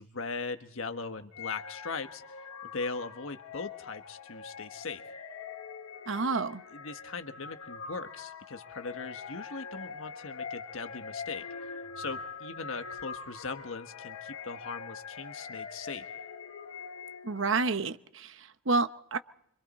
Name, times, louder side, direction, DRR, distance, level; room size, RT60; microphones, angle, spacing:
voice 1, 0.0-2.4 2.6-5.0 6.7-11.4 12.0-16.1, left 4 dB, 70° left, 8 dB, 1.3 m, -39 dB
sound 1, 1.3-17.5, left 5 dB, 90° left, 1.6 m, -43 dB
voice 2, 6.1-6.6 17.2-19.2, right 3 dB, 60° right, 11 dB, 0.9 m, -29 dB
26.0 x 25.5 x 4.2 m, 0.72 s
head